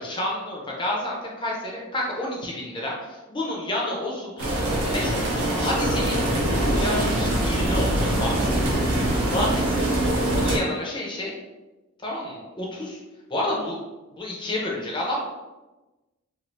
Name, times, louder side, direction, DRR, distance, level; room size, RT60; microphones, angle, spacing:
voice 1, 0.0-8.5 9.2-11.3 12.0-13.0 13.3-13.8 14.1-15.2, left 1 dB, 20° left, -3 dB, 0.6 m, -30 dB
sound 1, 4.4-10.6, right 1 dB, 85° right, 0.9 m, -23 dB
2.6 x 2.5 x 3.1 m, 1.1 s
head